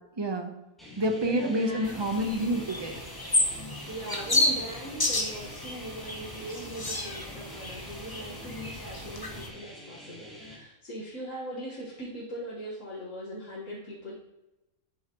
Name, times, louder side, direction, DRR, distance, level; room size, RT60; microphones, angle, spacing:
voice 1, 0.2-0.6 1.0-2.9, equal, 20° right, 5 dB, 0.7 m, -28 dB
sound 1, 0.8-10.6, left 1 dB, ahead, 2.2 m, -46 dB
voice 2, 1.2-2.1 3.9-14.1, right 1 dB, 60° left, -7 dB, 2.0 m, -40 dB
sound 2, 1.8-9.5, left 2 dB, 20° left, 0.8 m, -31 dB
11.0 x 6.5 x 3.0 m, 0.99 s
omnidirectional pair, 1.5 m